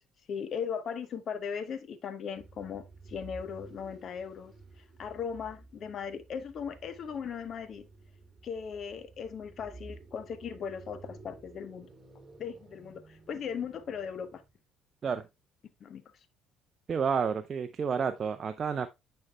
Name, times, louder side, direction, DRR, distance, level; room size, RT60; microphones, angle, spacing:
voice 1, 0.3-4.5 5.0-7.9 8.4-11.9 12.4-14.4 15.8-16.0, left 7 dB, 50° left, 0.6 m, -38 dB
sound 1, 2.4-14.5, right 3 dB, 20° right, 1.6 m, -53 dB
voice 2, 16.9-18.9, right 6 dB, 45° right, 0.4 m, -30 dB
9.7 x 4.4 x 2.2 m
hypercardioid pair, 55°, 0 cm